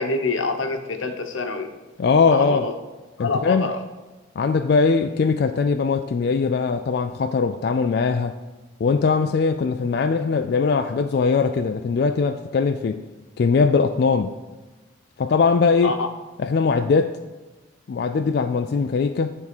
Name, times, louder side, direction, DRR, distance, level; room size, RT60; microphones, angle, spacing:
voice 1, 0.0-1.7 2.3-2.7 3.2-3.8 15.8-16.1, left 3 dB, 90° left, 5 dB, 0.9 m, -26 dB
voice 2, 2.0-2.7 3.2-3.7 4.4-8.4 8.8-13.0 13.4-14.3 15.2-15.9 16.4-17.1 17.9-19.4, left 5 dB, 55° left, 7 dB, 0.3 m, -20 dB
9.7 x 3.6 x 6.0 m, 1.2 s
head